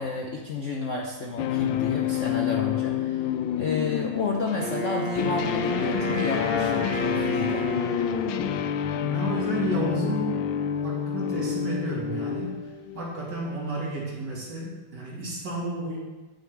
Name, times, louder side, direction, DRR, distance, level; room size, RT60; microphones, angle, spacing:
voice 1, 0.0-3.3 3.6-7.6, left 4 dB, 60° left, 0 dB, 0.8 m, -31 dB
sound 1, 1.4-13.3, left 9 dB, 80° left, 1.3 m, -29 dB
Wind instrument woodwind instrument, 4.6-8.7, equal, 35° left, 1.1 m, -30 dB
voice 2, 8.9-10.5 10.8-12.5 12.9-16.0, right 1 dB, 55° right, -5 dB, 2.9 m, -31 dB
8.7 x 7.0 x 4.6 m, 1.2 s
omnidirectional pair, 2.2 m